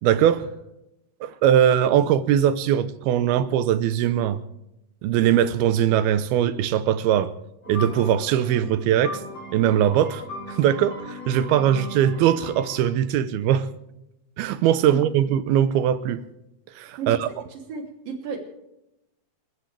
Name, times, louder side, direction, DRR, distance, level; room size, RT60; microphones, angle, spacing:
voice 1, 0.0-0.5 1.2-4.4 5.0-7.3 7.7-9.2 9.5-10.2 10.5-13.7 14.4-16.2 16.8-17.3, right 10 dB, 85° right, 2.8 m, -21 dB
sound 1, 7.6-12.8, equal, 25° left, 7.6 m, -37 dB
voice 2, 17.7-18.4, right 5 dB, 65° right, 4.7 m, -32 dB
29.5 x 14.0 x 3.4 m
omnidirectional pair, 4.4 m